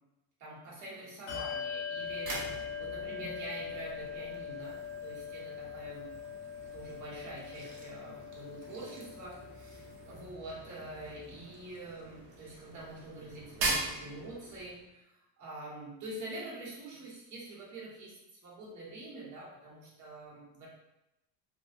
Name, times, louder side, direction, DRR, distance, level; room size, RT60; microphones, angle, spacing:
voice 1, 0.4-6.1 6.7-15.1 15.4-18.2 18.4-20.7, right 1 dB, 45° right, -5 dB, 0.9 m, -45 dB
Bell, 1.3-11.3, left 7 dB, 35° left, 1.1 m, -42 dB
sound 1, 1.9-14.9, right 2 dB, 60° right, 0.7 m, -42 dB
2.6 x 2.1 x 2.4 m, 0.89 s
cardioid pair, 165°, 41 cm